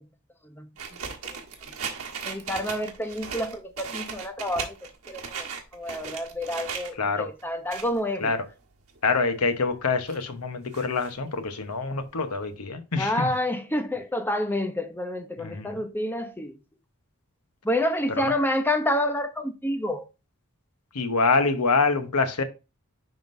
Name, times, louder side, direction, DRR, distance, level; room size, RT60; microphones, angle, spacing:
sound 1, 0.8-6.9 7.4-8.0 8.5-8.6 9.0-9.1 9.7-10.2 10.7-11.1 11.7-11.8 12.0-12.1 12.4-12.5, right 6 dB, 70° right, 1.5 m, -37 dB
voice 1, 2.2-4.7 5.1-5.5 5.7-8.3 13.0-16.5 17.6-20.1, left 1 dB, 10° left, 0.7 m, -28 dB
voice 2, 7.0-7.3 8.2-8.5 9.0-13.3 15.4-15.8 18.2-18.3 20.9-22.4, left 4 dB, 90° left, 1.0 m, -25 dB
10.5 x 3.8 x 2.6 m
head